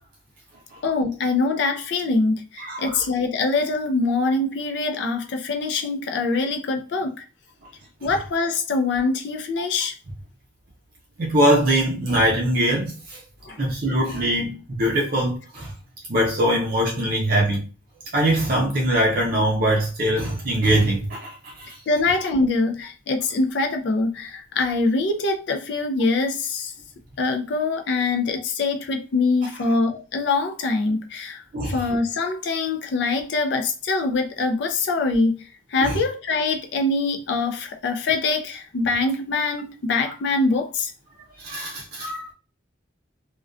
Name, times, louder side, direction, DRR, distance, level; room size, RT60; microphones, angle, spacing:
voice 1, 0.8-7.2 8.0-9.9 13.5-13.6 21.9-26.7 27.2-35.4 35.7-40.9, left 3 dB, 60° left, 0.4 m, -24 dB
voice 2, 2.6-2.9 11.2-13.2 13.6-15.7 16.1-17.6 18.1-21.8 31.5-31.8 35.8-36.0 41.4-42.3, right 1 dB, 50° right, 0.5 m, -22 dB
2.4 x 2.2 x 2.3 m
head